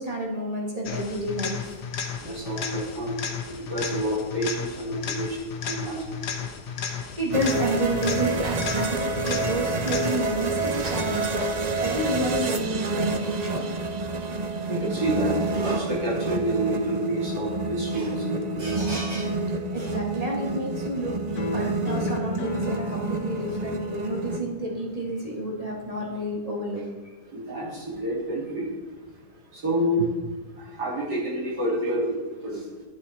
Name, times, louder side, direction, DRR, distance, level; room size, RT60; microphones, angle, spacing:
voice 1, 0.0-1.8 6.8-11.5 11.8-13.6 19.7-21.1 21.5-26.8, right 1 dB, 25° right, -2 dB, 1.9 m, -30 dB
sound 1, 0.8-10.5 18.4-18.5, left 7 dB, 90° left, 1.5 m, -34 dB
voice 2, 2.2-3.2 3.7-5.4 5.6-6.2 9.2-9.4 10.7-10.9 14.7-19.3 19.8-19.9 27.3-28.7 29.5-30.1 30.6-32.2 32.4-32.6, right 1 dB, 85° right, -5 dB, 3.7 m, -28 dB
sound 2, 7.3-24.4, right 2 dB, 50° right, 0.4 m, -28 dB
sound 3, 21.4-26.4, left 4 dB, 70° left, 1.4 m, -39 dB
10.5 x 9.9 x 4.2 m, 1.3 s
omnidirectional pair, 1.7 m